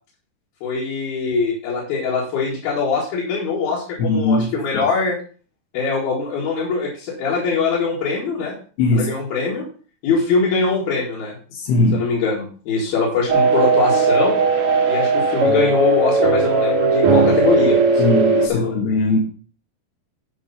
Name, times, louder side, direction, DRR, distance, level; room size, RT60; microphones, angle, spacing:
voice 1, 0.6-5.2 5.7-8.6 8.9-9.7 10.0-11.4 11.9-14.4 14.9-18.8 19.1-19.2, left 4 dB, 70° left, 3.8 m, -22 dB
voice 2, 4.0-4.5 4.7-4.8 8.8-9.1 11.5-12.1 18.0-19.2, left 2 dB, 85° left, 3.6 m, -19 dB
sound 1, 13.3-18.5, right 3 dB, 60° right, 1.6 m, -17 dB
10.0 x 5.0 x 5.5 m
omnidirectional pair, 4.5 m